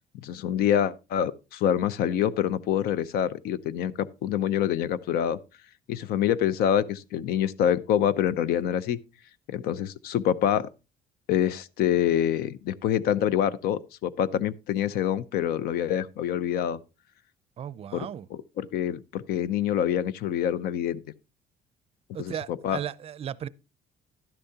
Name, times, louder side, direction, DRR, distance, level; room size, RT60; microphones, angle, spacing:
voice 1, 0.2-5.4 5.9-9.0 9.5-10.7 11.3-16.8 17.9-18.1 18.6-21.0 22.2-22.8, left 10 dB, 75° left, 0.7 m, -26 dB
voice 2, 17.6-18.3 22.1-23.5, right 9 dB, 40° right, 0.5 m, -35 dB
12.0 x 10.0 x 2.8 m
cardioid pair, 140°, 16 cm